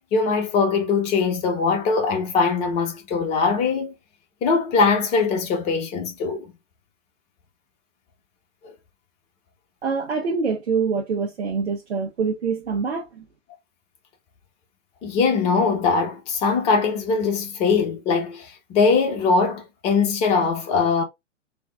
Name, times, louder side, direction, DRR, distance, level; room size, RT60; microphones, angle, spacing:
voice 1, 0.1-3.9 4.4-6.5 8.6-8.7 15.0-21.0, left 4 dB, 20° left, 0.7 m, -21 dB
voice 2, 9.8-13.2, right 5 dB, 65° right, 0.8 m, -25 dB
3.4 x 2.3 x 2.3 m
figure-of-eight pair, 120°, 36 cm